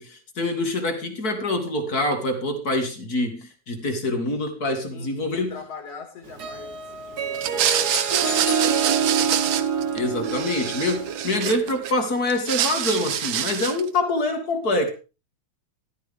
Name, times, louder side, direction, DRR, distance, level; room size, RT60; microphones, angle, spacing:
voice 1, 0.0-5.6 9.9-14.9, left 2 dB, 35° left, 2.0 m, -25 dB
voice 2, 4.9-9.6, left 5 dB, 55° left, 3.1 m, -43 dB
Harp, 6.3-11.8, right 6 dB, 55° right, 1.0 m, -27 dB
sound 1, 7.3-10.0 10.2-11.9 12.3-13.9, right 10 dB, 90° right, 1.1 m, -26 dB
sound 2, 7.7-9.5, left 10 dB, 80° left, 2.4 m, -36 dB
13.5 x 12.5 x 3.6 m
omnidirectional pair, 3.4 m